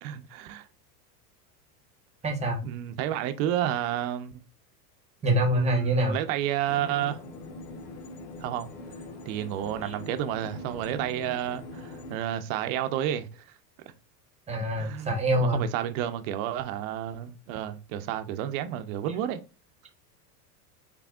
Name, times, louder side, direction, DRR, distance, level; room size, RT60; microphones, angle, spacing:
voice 1, 0.0-0.7 2.6-4.4 5.3-7.2 8.4-8.7 9.3-13.4 14.8-15.1 15.4-19.4, right 11 dB, 55° right, 0.8 m, -31 dB
voice 2, 2.2-2.6 5.2-6.1 9.8-9.9 14.5-15.6, right 1 dB, 15° right, 1.2 m, -25 dB
sound 1, 6.6-12.2, left 2 dB, 75° left, 1.3 m, -42 dB
6.0 x 3.4 x 2.4 m
supercardioid pair, 130°, 47 cm